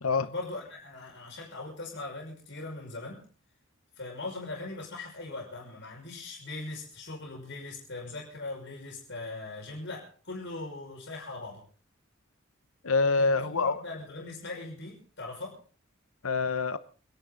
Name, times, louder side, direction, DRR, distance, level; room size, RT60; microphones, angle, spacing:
voice 1, 0.2-3.3 4.0-11.6 13.2-15.6, left 2 dB, 60° left, 6.2 m, -40 dB
voice 2, 12.8-13.8 16.2-16.8, left 4 dB, 85° left, 1.0 m, -26 dB
28.0 x 10.5 x 4.0 m
head